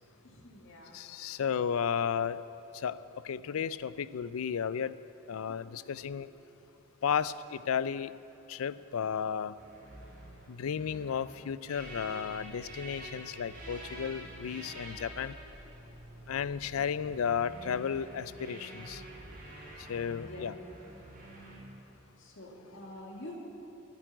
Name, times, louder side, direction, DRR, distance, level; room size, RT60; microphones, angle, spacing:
voice 1, 0.2-1.0 20.2-20.5 22.2-23.4, left 1 dB, 60° left, -1 dB, 2.5 m, -47 dB
voice 2, 0.9-2.4 2.7-3.0 3.2-4.9 5.3-6.3 7.0-8.1 8.5-9.5 10.5-15.4 16.3-19.0 19.9-20.5, left 7 dB, 85° left, 16 dB, 0.4 m, -33 dB
sound 1, 9.6-21.6, right 1 dB, 40° right, 3.3 m, -47 dB
11.5 x 9.2 x 9.1 m, 3.0 s
head